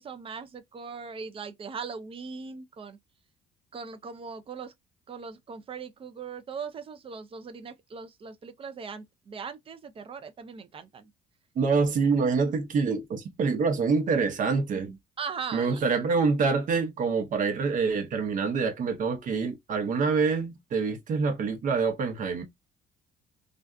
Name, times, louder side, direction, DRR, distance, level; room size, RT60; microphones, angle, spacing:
voice 1, 0.0-3.0 3.7-4.7 5.1-11.1 15.2-15.8, right 5 dB, 35° right, 0.5 m, -39 dB
voice 2, 11.6-15.0 15.5-22.4, right 4 dB, 50° right, 0.9 m, -26 dB
2.5 x 2.3 x 2.3 m
cardioid pair, 110°, 17 cm